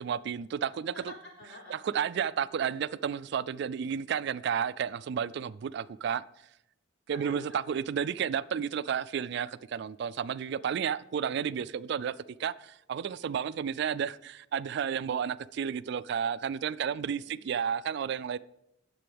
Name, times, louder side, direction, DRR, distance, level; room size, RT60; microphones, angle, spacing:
voice 1, 0.0-0.9 1.7-6.2 7.1-12.1 12.4-18.4, right 7 dB, 60° right, 0.3 m, -32 dB
voice 2, 0.9-1.7 7.1-7.4 16.6-17.4, left 1 dB, 85° left, 4.3 m, -48 dB
17.5 x 6.8 x 3.4 m
head